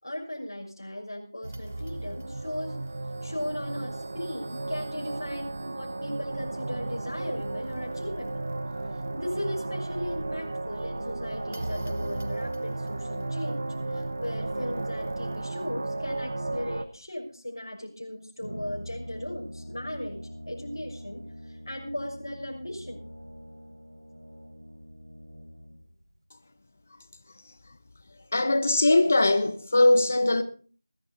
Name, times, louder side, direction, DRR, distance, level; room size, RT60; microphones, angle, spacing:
voice 1, 0.0-2.8 3.2-8.4 9.1-13.6 13.9-23.0, left 1 dB, 85° left, 6.4 m, -37 dB
sound 1, 1.4-16.9, right 2 dB, 25° right, 0.8 m, -34 dB
Brass instrument, 18.4-25.9, equal, 80° right, 5.8 m, -43 dB
voice 2, 28.3-30.4, left 2 dB, 25° left, 1.1 m, -21 dB
20.5 x 12.0 x 4.2 m
figure-of-eight pair, 175°, 2 cm